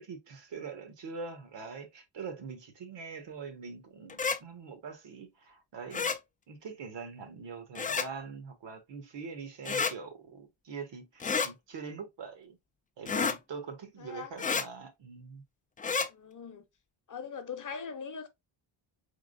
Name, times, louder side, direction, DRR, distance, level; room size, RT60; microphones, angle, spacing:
voice 1, 0.0-6.1 6.5-12.6 13.0-15.4, right 5 dB, 65° right, 1.4 m, -43 dB
sound 1, 4.1-4.4 5.9-6.2 7.8-8.1 9.7-9.9 11.2-11.5 13.1-13.4 14.4-14.7 15.8-16.1, left 5 dB, 20° left, 0.3 m, -30 dB
voice 2, 14.0-14.3 16.1-16.6 17.1-18.3, left 6 dB, 40° left, 0.8 m, -41 dB
4.3 x 3.7 x 2.4 m
cardioid pair, 130°, 47 cm